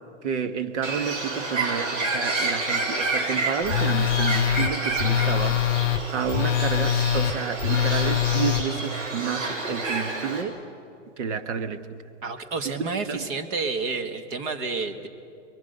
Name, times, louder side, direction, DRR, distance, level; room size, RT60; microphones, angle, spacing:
voice 1, 0.2-5.6 6.1-10.6 11.2-11.8 13.1-13.3, right 7 dB, 65° right, 9 dB, 1.6 m, -30 dB
Bird, 0.8-10.4, right 3 dB, 85° right, 7.3 m, -29 dB
Telephone, 3.7-8.6, left 10 dB, 55° left, 0.8 m, -23 dB
voice 2, 12.2-15.1, right 4 dB, 40° right, 7 dB, 1.8 m, -30 dB
29.5 x 22.5 x 6.8 m, 2.5 s
hypercardioid pair, 155°, 38 cm